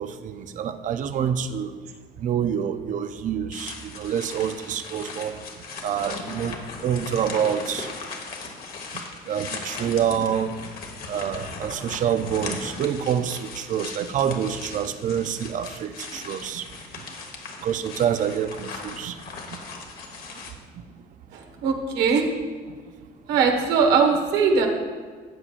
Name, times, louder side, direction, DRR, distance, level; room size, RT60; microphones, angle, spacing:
voice 1, 0.0-1.7 2.2-5.4 5.8-7.9 8.9-10.7 11.1-16.7 16.9-17.1 17.6-19.2 19.5-19.6 20.7-20.8, right 8 dB, 50° right, 9 dB, 0.6 m, -27 dB
sound 1, 3.5-20.5, left 4 dB, 60° left, 1.4 m, -38 dB
voice 2, 21.3-22.2 23.3-24.7, right 5 dB, 90° right, 3 dB, 1.4 m, -21 dB
14.0 x 8.4 x 2.5 m, 1.5 s
cardioid pair, 110°, 17 cm